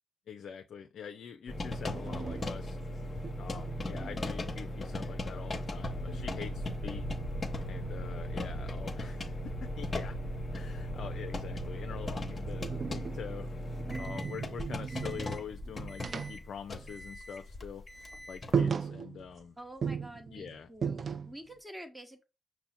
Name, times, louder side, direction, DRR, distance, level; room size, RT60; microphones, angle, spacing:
voice 1, 0.3-2.8 3.4-7.1 7.7-10.2 10.5-13.5 14.0-17.9 18.3-19.6 20.3-20.7, left 7 dB, 60° left, 0.4 m, -45 dB
sound 1, 1.5-18.6, left 1 dB, 30° left, 0.9 m, -38 dB
sound 2, 1.9-5.0 5.3-8.3 9.6-11.6 12.1-17.4 17.6-17.8 18.2-18.3 18.5-19.4 19.8-21.5, right 6 dB, 45° right, 0.4 m, -38 dB
sound 3, 5.7-12.1, left 1 dB, 85° right, 0.8 m, -43 dB
voice 2, 19.6-22.2, right 1 dB, 10° right, 1.1 m, -48 dB
5.5 x 2.1 x 4.1 m
supercardioid pair, 55°, 0 cm